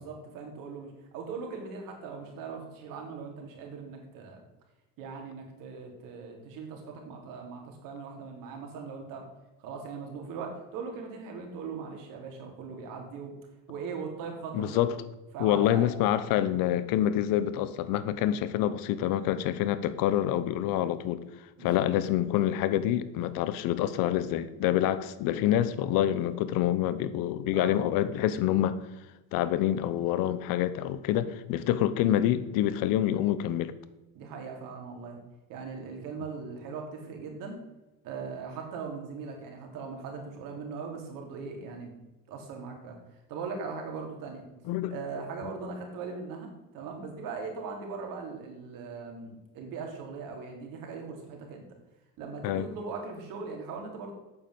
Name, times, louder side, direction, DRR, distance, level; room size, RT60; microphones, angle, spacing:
voice 1, 0.0-4.4 5.0-9.2 9.6-13.3 13.7-14.8 15.3-15.9 21.6-21.9 27.5-27.8 34.2-35.2 35.5-37.6 38.0-41.9 42.3-43.0 43.3-44.5 44.9-51.6 52.2-54.1, right 5 dB, 70° right, 3.3 m, -40 dB
voice 2, 14.5-14.9 15.4-21.2 21.6-28.8 29.3-33.7 44.7-44.9 52.4-52.7, left 12 dB, 75° left, 1.0 m, -27 dB
8.6 x 7.2 x 8.0 m
supercardioid pair, 85°, 34 cm